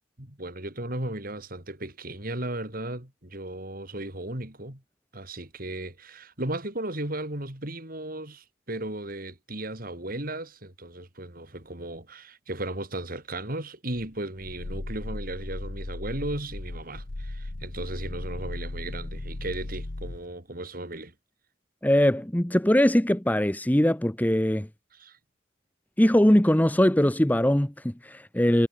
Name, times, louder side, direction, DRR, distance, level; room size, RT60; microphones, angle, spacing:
voice 1, 0.2-4.8 5.1-21.1 24.9-25.2, right 1 dB, 50° right, 4.4 m, -36 dB
Growling, 13.9-20.3, left 1 dB, 75° left, 1.4 m, -36 dB
voice 2, 21.8-24.7 26.0-28.7, equal, 10° left, 0.9 m, -21 dB
head